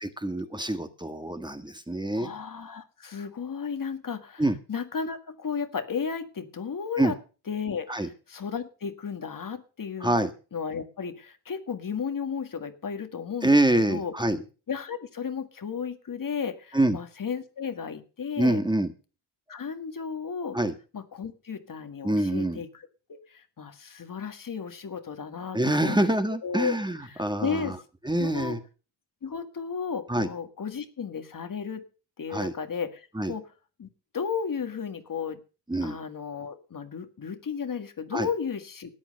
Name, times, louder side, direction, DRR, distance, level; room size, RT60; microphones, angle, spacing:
voice 1, 0.0-2.3 4.4-4.6 7.0-7.1 7.9-8.1 10.0-10.3 13.4-14.4 16.7-17.0 18.4-18.9 20.5-20.7 22.0-22.6 25.5-27.7 28.0-28.6 30.1-30.3 32.3-32.5 33.2-33.3 35.7-36.0 38.1-38.3, right 1 dB, 10° right, 8 dB, 1.5 m, -25 dB
voice 2, 2.1-7.2 7.5-14.1 14.7-18.6 19.5-20.6 20.9-26.1 26.4-26.8 27.0-27.8 28.2-28.6 29.2-31.8 32.2-33.5 33.8-33.9 34.1-35.4 35.8-38.9, left 6 dB, 50° left, 8 dB, 1.8 m, -34 dB
13.5 x 9.1 x 6.4 m, 0.35 s
cardioid pair, 75°, 42 cm